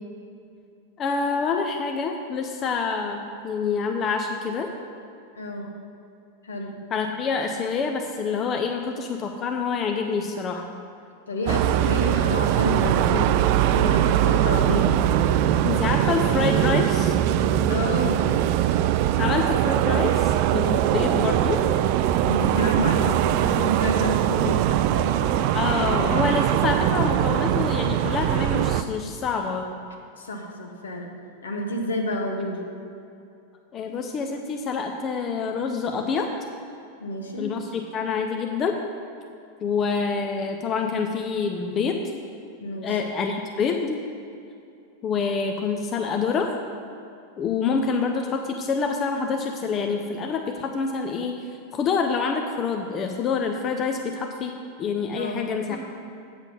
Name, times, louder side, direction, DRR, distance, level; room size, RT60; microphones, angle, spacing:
voice 1, 1.0-4.7 6.9-10.7 14.7-14.8 15.6-17.2 19.2-21.6 25.4-29.7 32.2-32.3 33.7-36.3 37.4-38.8 39.6-42.0 42.8-44.0 45.0-46.5 47.4-55.8, left 5 dB, 30° left, 4 dB, 0.6 m, -27 dB
voice 2, 5.4-5.7 6.4-6.8 11.3-13.3 13.7-14.9 17.7-18.2 19.1-19.3 22.2-25.1 30.2-31.1 31.4-32.6 37.0-37.5 42.6-43.0 55.2-55.4 55.7-55.8, equal, 70° left, 3 dB, 1.1 m, -29 dB
sound 1, 11.5-28.8, right 12 dB, 45° right, 0.3 m, -21 dB
8.1 x 7.3 x 5.3 m, 2.6 s
figure-of-eight pair, 90°, 0 cm